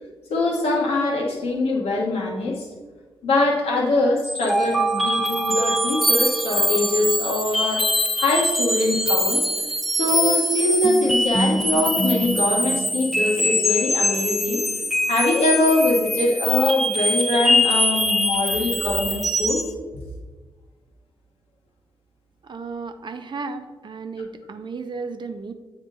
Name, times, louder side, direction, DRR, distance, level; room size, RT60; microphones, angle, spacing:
voice 1, 0.3-2.7 3.2-9.5 10.0-14.6 15.1-19.6, left 2 dB, 80° left, -1 dB, 1.2 m, -23 dB
sound 1, 4.2-19.7, equal, ahead, 0.6 m, -23 dB
voice 2, 22.4-25.5, right 4 dB, 50° right, 7 dB, 0.6 m, -34 dB
7.9 x 3.6 x 3.8 m, 1.3 s
supercardioid pair, 45°, 10 cm